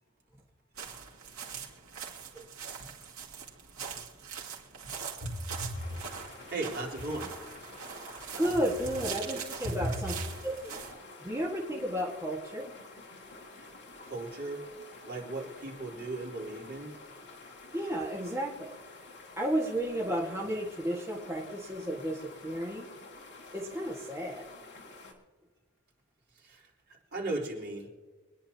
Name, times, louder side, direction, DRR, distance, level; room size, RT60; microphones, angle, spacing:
sound 1, 0.7-10.9, right 6 dB, 75° right, 2.7 m, -42 dB
voice 1, 5.2-5.8 6.5-7.3 9.6-10.1 14.1-14.6 15.0-17.0 26.3-27.9, right 1 dB, 50° right, -2 dB, 4.3 m, -36 dB
sound 2, 5.7-25.1, left 3 dB, 55° left, 2.6 m, -50 dB
voice 2, 8.4-10.2 10.4-10.8 11.2-12.7 17.7-18.7 19.4-22.9 23.5-24.4, equal, 15° right, -4 dB, 1.7 m, -32 dB
24.5 x 10.5 x 2.9 m, 1.3 s
head